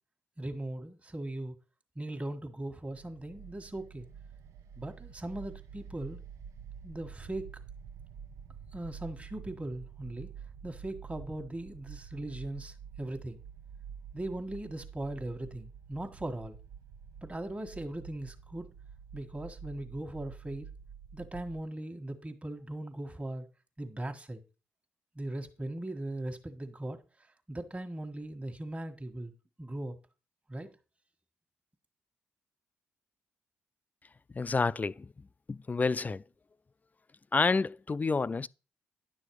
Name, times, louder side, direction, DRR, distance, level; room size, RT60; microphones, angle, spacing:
voice 1, 0.4-1.5 1.9-4.1 4.7-6.2 6.8-7.5 8.7-10.3 10.6-13.4 14.1-16.6 17.2-18.7 19.1-20.7 21.1-23.5 23.8-24.4 25.1-27.0 27.5-29.3 29.6-30.0 30.5-30.7, right 1 dB, 25° right, 1.6 m, -39 dB
sound 1, 2.9-21.6, right 7 dB, 75° right, 0.6 m, -48 dB
voice 2, 34.3-35.1 35.5-36.2 37.3-38.5, left 4 dB, 30° left, 0.4 m, -29 dB
10.0 x 6.4 x 4.8 m
hypercardioid pair, 45°, 5 cm